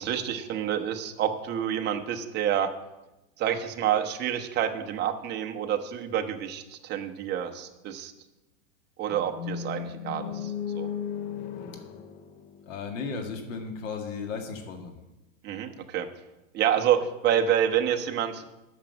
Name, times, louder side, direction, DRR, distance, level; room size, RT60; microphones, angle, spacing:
voice 1, 0.0-2.7 3.4-8.1 9.0-10.9 15.4-16.1 16.5-18.5, right 9 dB, 25° right, 5 dB, 0.8 m, -28 dB
sound 1, 9.1-13.2, left 8 dB, 25° left, 0.4 m, -36 dB
voice 2, 12.7-14.9, left 5 dB, 70° left, 5 dB, 2.0 m, -35 dB
8.7 x 6.1 x 7.9 m, 1.0 s
supercardioid pair, 140°, 39 cm